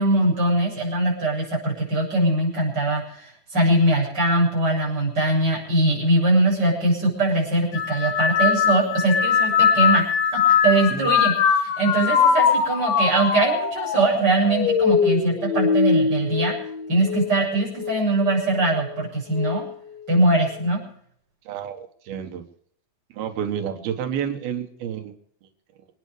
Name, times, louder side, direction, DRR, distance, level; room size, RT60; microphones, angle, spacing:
voice 1, 0.0-10.0 10.3-16.6 16.9-19.6 20.1-20.8, right 2 dB, 25° right, -3 dB, 8.1 m, -22 dB
sound 1, 7.7-17.3 17.8-18.4 19.3-19.7, left 6 dB, 85° left, 3.1 m, -21 dB
voice 2, 21.5-22.4 23.1-25.1, right 8 dB, 90° right, 5 dB, 3.4 m, -30 dB
27.0 x 9.6 x 5.0 m, 0.63 s
omnidirectional pair, 4.2 m